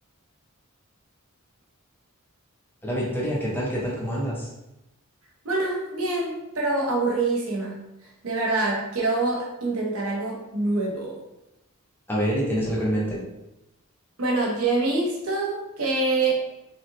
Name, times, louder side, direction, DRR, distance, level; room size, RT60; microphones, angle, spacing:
voice 1, 2.8-4.5 12.1-13.2, equal, 10° left, -5 dB, 0.7 m, -26 dB
voice 2, 5.4-7.9 8.2-11.2 14.2-16.4, right 3 dB, 75° right, -2 dB, 0.8 m, -25 dB
3.1 x 2.8 x 2.7 m, 0.92 s
head